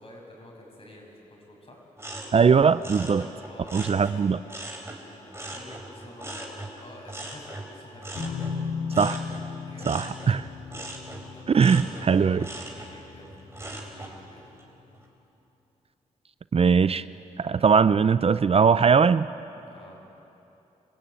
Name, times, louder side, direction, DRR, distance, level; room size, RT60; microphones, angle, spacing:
voice 1, 0.0-1.8 3.2-4.3 5.1-8.4 9.7-9.9 11.3-14.5 19.6-20.0, left 1 dB, 45° left, 0 dB, 7.1 m, -49 dB
sound 1, 2.0-5.0 5.3-14.2 14.6-15.1, right 1 dB, 20° right, 4.1 m, -40 dB
voice 2, 2.3-3.2 3.7-4.4 9.0-9.2 9.9-10.5 11.5-12.4 16.5-17.0 17.4-19.3, right 6 dB, 45° right, 15 dB, 0.5 m, -20 dB
sound 2, 8.1-13.7, left 5 dB, 80° left, 3.8 m, -36 dB
26.0 x 16.5 x 8.8 m, 2.9 s
cardioid pair, 65°, 14 cm